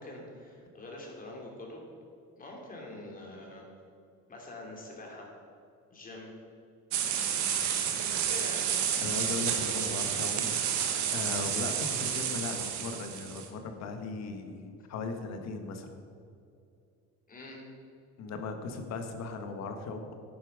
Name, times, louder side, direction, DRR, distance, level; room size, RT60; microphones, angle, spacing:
voice 1, 0.0-1.9 2.4-3.7 4.3-5.3 5.9-6.3 8.1-8.7 17.3-17.6, left 1 dB, 25° left, -1 dB, 2.9 m, -45 dB
sound 1, 6.9-13.5, right 8 dB, 65° right, 1.4 m, -30 dB
voice 2, 9.0-10.6 11.1-15.9 18.2-20.1, left 4 dB, 60° left, 6 dB, 1.6 m, -37 dB
12.0 x 9.0 x 5.1 m, 2.5 s
cardioid pair, 130°, 30 cm